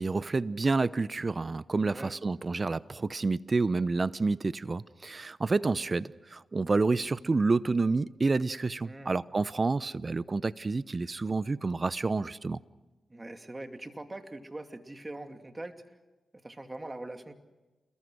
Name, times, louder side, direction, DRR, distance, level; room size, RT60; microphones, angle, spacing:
voice 1, 0.0-12.6, right 3 dB, 45° right, 0.7 m, -29 dB
voice 2, 1.8-2.2 8.8-9.2 13.1-15.8 16.4-17.3, right 2 dB, 25° right, 2.5 m, -42 dB
28.5 x 22.0 x 6.4 m
supercardioid pair, 40°, 0 cm